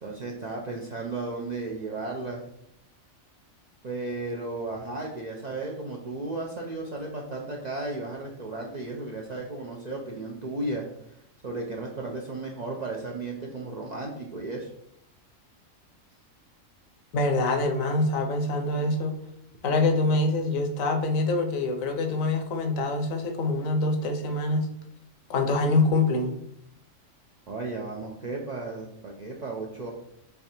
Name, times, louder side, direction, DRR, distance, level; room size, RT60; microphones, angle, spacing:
voice 1, 0.0-2.4 3.8-10.9 11.4-14.7 27.5-29.9, right 2 dB, 55° right, -1 dB, 0.5 m, -34 dB
voice 2, 17.1-19.2 19.6-24.7 25.3-26.3, left 2 dB, 80° left, 5 dB, 1.1 m, -25 dB
3.6 x 3.4 x 4.2 m, 0.74 s
omnidirectional pair, 1.4 m